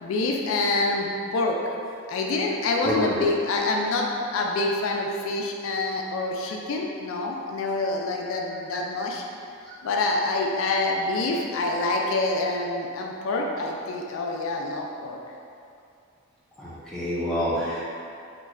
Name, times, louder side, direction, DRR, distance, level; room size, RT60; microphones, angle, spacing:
voice 1, 0.0-1.6 2.1-9.2 9.8-15.2, left 2 dB, 70° left, 0 dB, 0.3 m, -26 dB
voice 2, 2.8-3.2 8.7-8.8 16.6-18.0, equal, 5° left, -9 dB, 0.5 m, -27 dB
3.1 x 2.2 x 3.5 m, 2.5 s
head